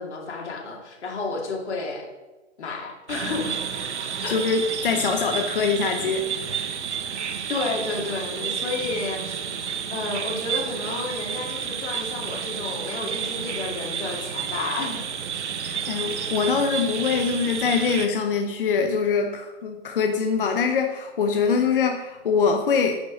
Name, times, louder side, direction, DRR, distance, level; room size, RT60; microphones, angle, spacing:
voice 1, 0.0-2.1 2.6-3.6 4.2-4.4 7.5-9.4 9.9-15.0, left 3 dB, 70° left, 0 dB, 2.6 m, -31 dB
sound 1, 3.1-18.1, right 7 dB, 70° right, 1.0 m, -31 dB
voice 2, 4.3-6.3 15.6-23.0, left 5 dB, 50° left, 4 dB, 0.7 m, -23 dB
9.1 x 5.4 x 5.1 m, 1.1 s
hypercardioid pair, 180°, 35 cm